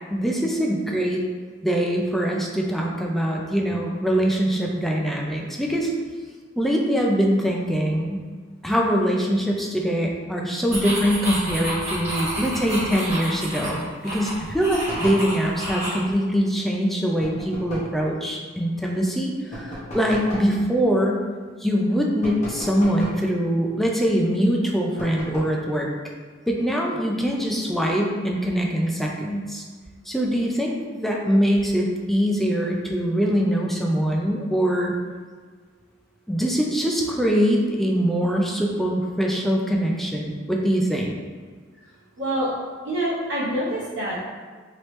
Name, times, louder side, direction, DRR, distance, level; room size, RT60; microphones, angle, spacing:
voice 1, 0.1-1.2 1.6-5.9 6.6-8.2 8.6-21.2 21.6-25.9 26.5-29.6 30.1-34.9 36.3-41.1, equal, ahead, -1 dB, 0.3 m, -23 dB
sound 1, 10.7-16.0, right 1 dB, 35° right, 1.5 m, -30 dB
sound 2, 14.9-15.3 17.2-18.0 19.5-20.5 22.2-23.3 25.0-25.6, equal, 40° left, 1.0 m, -35 dB
voice 2, 42.2-42.5 42.8-44.2, right 1 dB, 70° right, -9 dB, 0.8 m, -26 dB
3.0 x 3.0 x 3.1 m, 1.5 s
head